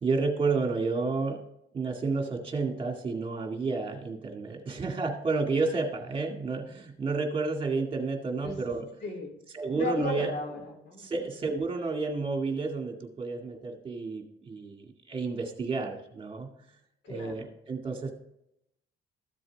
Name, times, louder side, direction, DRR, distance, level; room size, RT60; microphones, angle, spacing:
voice 1, 0.0-1.4 1.7-8.9 9.5-10.3 11.0-16.5 17.1-18.1, right 4 dB, 30° right, 3 dB, 2.1 m, -31 dB
voice 2, 9.0-9.4 9.7-11.1 17.0-17.5, left 2 dB, 85° left, 3 dB, 3.4 m, -35 dB
14.0 x 7.6 x 3.5 m, 0.78 s
cardioid pair, 120°, 18 cm